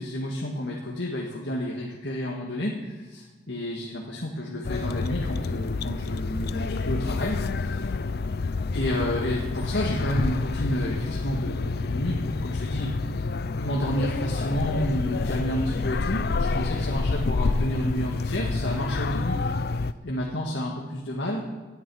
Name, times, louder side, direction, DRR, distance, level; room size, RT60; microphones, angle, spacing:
voice 1, 0.0-7.9 8.7-12.9 13.5-21.4, equal, 85° left, -2 dB, 1.8 m, -30 dB
sound 1, 4.6-19.9, left 3 dB, 55° left, 0.5 m, -28 dB
18.5 x 9.8 x 4.8 m, 1.4 s
head